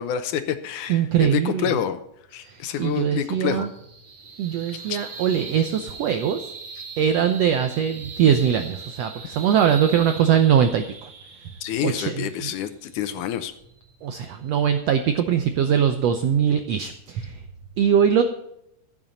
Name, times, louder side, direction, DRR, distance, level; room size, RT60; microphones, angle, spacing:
voice 1, 0.0-2.0 2.3-3.7 4.9-5.0 6.8-6.9 11.6-13.5, left 9 dB, 75° left, 10 dB, 2.2 m, -28 dB
voice 2, 0.9-1.7 2.8-3.7 4.4-6.5 7.0-10.9 11.8-12.5 14.0-17.3 17.8-18.2, right 8 dB, 85° right, 8 dB, 1.4 m, -21 dB
sound 1, 2.3-14.9, right 4 dB, 50° right, 3.1 m, -41 dB
15.5 x 7.5 x 4.1 m, 0.79 s
omnidirectional pair, 3.9 m